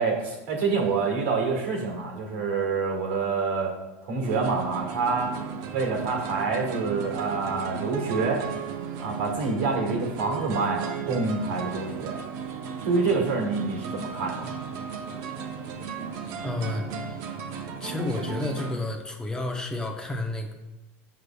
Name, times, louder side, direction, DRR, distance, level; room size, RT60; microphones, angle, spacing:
voice 1, 0.0-3.7 4.0-5.4 5.7-8.4 9.0-12.3 12.8-14.6, right 4 dB, 80° right, 1 dB, 1.7 m, -27 dB
sound 1, 4.2-18.7, right 7 dB, 55° right, 0.7 m, -35 dB
voice 2, 16.4-16.9 17.8-20.5, left 2 dB, 10° left, 2 dB, 0.6 m, -30 dB
6.6 x 6.2 x 2.3 m, 1.0 s
supercardioid pair, 130°, 7 cm